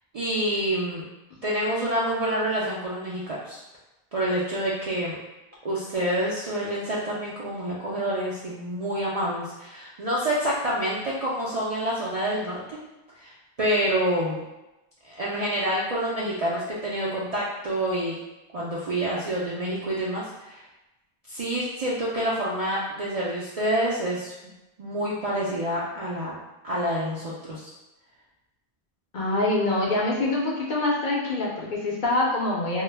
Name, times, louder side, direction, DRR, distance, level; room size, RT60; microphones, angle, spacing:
voice 1, 0.1-1.0 1.4-3.6 4.1-5.2 5.6-12.8 13.2-14.4 15.0-18.2 18.5-20.6 21.3-24.3 24.8-26.4 26.6-27.7, right 1 dB, 55° right, -7 dB, 0.4 m, -27 dB
voice 2, 29.1-32.8, left 2 dB, 60° left, -4 dB, 0.6 m, -25 dB
2.2 x 2.1 x 3.2 m, 0.98 s
omnidirectional pair, 1.1 m